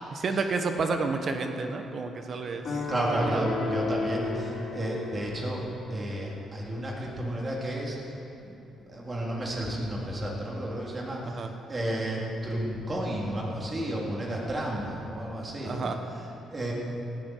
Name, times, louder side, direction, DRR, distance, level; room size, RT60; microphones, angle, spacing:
voice 1, 0.2-2.8 3.3-3.4 11.3-11.5 15.6-16.0, right 4 dB, 50° right, 6 dB, 1.1 m, -30 dB
sound 1, 2.6-5.9, left 2 dB, 50° left, 4.2 m, -33 dB
voice 2, 2.9-8.0 8.4-15.9 16.1-16.7, right 1 dB, 30° right, -3 dB, 3.5 m, -32 dB
17.5 x 12.5 x 4.7 m, 2.9 s
cardioid pair, 90°, 0 cm